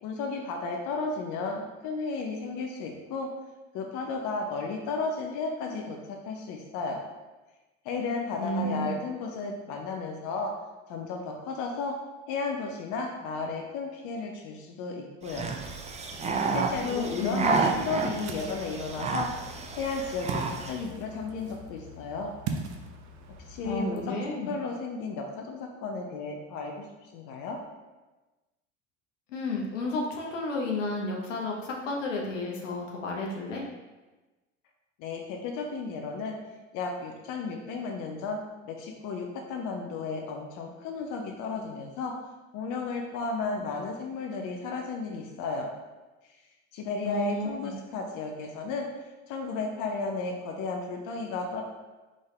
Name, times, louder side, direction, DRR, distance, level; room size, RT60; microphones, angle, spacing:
voice 1, 0.0-3.3 3.7-7.0 7.8-10.5 10.9-11.9 12.3-15.5 16.5-19.3 19.8-22.3 23.5-24.0 24.3-26.9 27.1-27.6 35.0-36.4 36.7-38.4 38.7-42.1 42.5-45.7 46.7-48.9 49.3-51.6, left 4 dB, 55° left, 2 dB, 0.7 m, -33 dB
voice 2, 8.3-8.9 16.9-17.7 23.6-24.5 29.3-33.6 47.0-47.7, left 2 dB, 85° left, -1 dB, 0.9 m, -32 dB
sound 1, 15.2-20.8, right 4 dB, 20° right, 0.5 m, -30 dB
Ocean, 15.6-23.8, right 3 dB, 55° right, 0.7 m, -42 dB
3.9 x 3.7 x 3.2 m, 1.2 s
hypercardioid pair, 70°, 36 cm